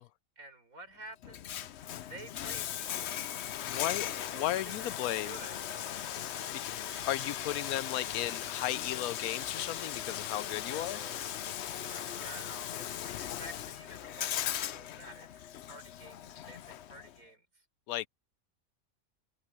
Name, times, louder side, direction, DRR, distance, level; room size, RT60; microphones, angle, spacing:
voice 1, 0.4-1.6 2.0-3.2 4.3-5.6 6.4-6.6 10.7-11.3 11.8-17.6, right 2 dB, 70° right, 5.7 m, -51 dB
Bathtub (filling or washing), 1.2-17.2, left 11 dB, 60° left, 0.8 m, -38 dB
voice 2, 3.7-5.4 6.5-6.7 7.1-11.0 17.9-18.1, left 13 dB, 85° left, 1.0 m, -35 dB
Bathtub (filling or washing) 2, 4.0-12.7, right 1 dB, 10° right, 1.8 m, -55 dB
omnidirectional pair, 1.5 m